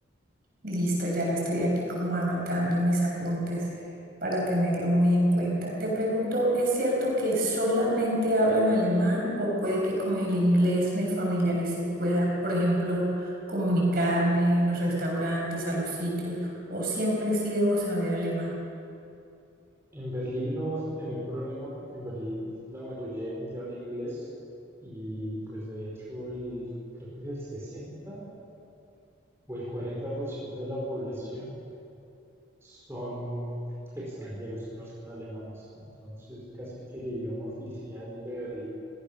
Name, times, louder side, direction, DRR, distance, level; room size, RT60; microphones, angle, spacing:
voice 1, 0.6-3.7 4.2-18.5, equal, 50° right, -3 dB, 7.1 m, -26 dB
voice 2, 19.9-24.3 24.8-26.7 27.0-28.2 29.5-31.5 32.6-33.6 33.9-38.7, equal, 15° right, -6 dB, 4.5 m, -36 dB
24.0 x 17.5 x 6.8 m, 2.7 s
head